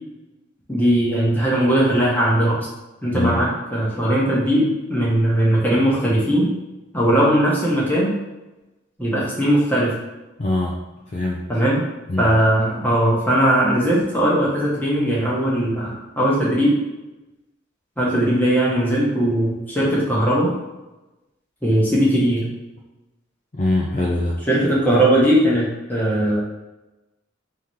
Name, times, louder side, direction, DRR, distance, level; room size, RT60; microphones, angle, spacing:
voice 1, 0.7-2.7 3.0-6.5 6.9-8.1 9.0-9.9 11.5-11.8 12.2-16.7 18.0-20.5 21.6-22.5 24.5-26.4, right 1 dB, 10° left, -6 dB, 1.2 m, -19 dB
voice 2, 3.1-3.4 10.4-10.8 11.1-11.5 12.1-12.3 23.5-24.4, left 2 dB, 35° left, -2 dB, 0.4 m, -23 dB
3.7 x 2.9 x 4.7 m, 1.0 s
head